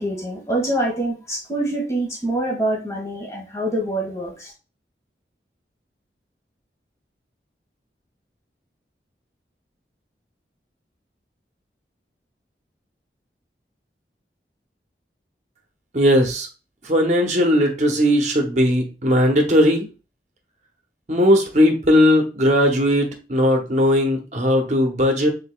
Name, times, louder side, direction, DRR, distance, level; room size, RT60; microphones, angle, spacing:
voice 1, 0.0-4.5, right 1 dB, 15° left, -3 dB, 1.4 m, -25 dB
voice 2, 15.9-16.5 16.8-19.9 21.1-25.3, equal, 40° right, 4 dB, 0.9 m, -18 dB
5.0 x 4.0 x 2.3 m, 0.31 s
head